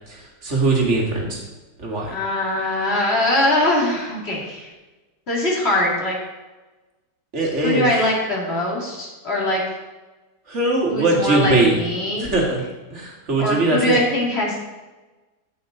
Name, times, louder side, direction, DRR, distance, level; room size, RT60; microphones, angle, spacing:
voice 1, 0.1-1.4 1.8-2.1 7.3-7.9 10.5-11.7 12.2-12.6 12.9-14.0, right 2 dB, 40° right, -1 dB, 2.3 m, -20 dB
voice 2, 2.1-4.7 5.3-6.2 7.6-9.6 10.9-12.3 13.4-14.6, left 1 dB, 35° left, -4 dB, 2.8 m, -22 dB
15.0 x 5.8 x 4.0 m, 1.2 s
omnidirectional pair, 1.9 m